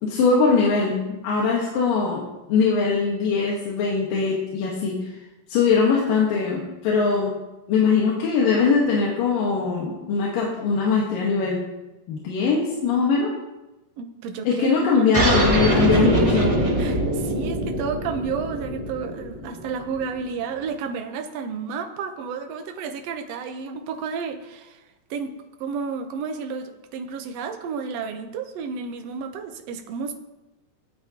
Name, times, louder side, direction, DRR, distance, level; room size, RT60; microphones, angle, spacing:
voice 1, 0.0-5.1 5.5-7.4 7.7-11.6 12.1-13.4 14.4-16.5, left 5 dB, 85° left, -3 dB, 3.1 m, -21 dB
voice 2, 14.0-15.1 16.0-16.2 16.8-24.8 25.1-25.3 25.6-30.1, right 5 dB, 70° right, 5 dB, 1.6 m, -31 dB
sound 1, 15.1-20.2, right 1 dB, 20° right, 0.9 m, -23 dB
17.5 x 9.2 x 2.9 m, 1.0 s
omnidirectional pair, 3.8 m